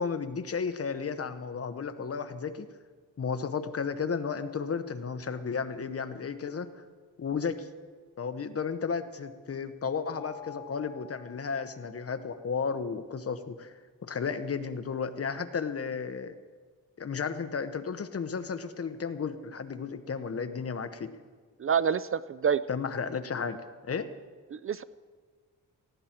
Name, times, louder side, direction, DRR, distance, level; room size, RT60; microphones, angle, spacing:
voice 1, 0.0-2.7 3.2-6.7 7.2-7.7 8.2-13.7 14.0-16.3 17.0-21.1 22.7-23.6 23.8-24.1, left 5 dB, 40° left, 10 dB, 1.0 m, -33 dB
Mallet percussion, 10.0-12.0, left 7 dB, 55° right, 5.5 m, -49 dB
voice 2, 21.6-22.6 24.5-24.8, right 7 dB, 40° right, 15 dB, 0.4 m, -27 dB
18.5 x 15.5 x 4.5 m, 1.5 s
wide cardioid pair, 110°, 35 cm